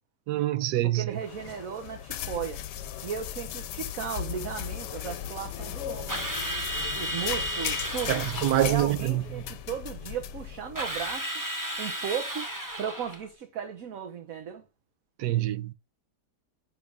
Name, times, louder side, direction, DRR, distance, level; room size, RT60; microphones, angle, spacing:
voice 1, 0.3-1.1 8.1-9.2 15.2-15.7, right 14 dB, 80° right, 1.2 m, -25 dB
voice 2, 0.8-2.6 3.0-6.3 6.9-8.2 8.6-11.4 11.8-12.5 12.8-14.7, right 8 dB, 55° right, 1.3 m, -36 dB
sound 1, 1.2-11.2, left 11 dB, 80° left, 1.2 m, -37 dB
Drill, 6.1-8.8 10.8-13.2, right 1 dB, 15° right, 1.1 m, -33 dB
10.5 x 3.8 x 3.4 m
omnidirectional pair, 1.8 m